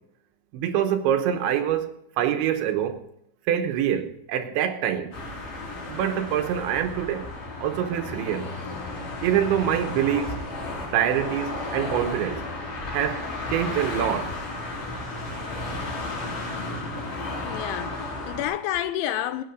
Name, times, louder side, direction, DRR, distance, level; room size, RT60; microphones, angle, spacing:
voice 1, 0.5-3.0 3.5-5.1 5.9-7.3 7.6-8.5 9.2-10.4 10.9-12.4 12.9-14.4, right 10 dB, 80° right, 3.2 m, -25 dB
sound 1, 5.1-18.4, left 2 dB, 45° left, 6.0 m, -33 dB
voice 2, 17.4-19.4, left 12 dB, 80° left, 3.1 m, -29 dB
17.5 x 9.4 x 5.2 m
omnidirectional pair, 5.6 m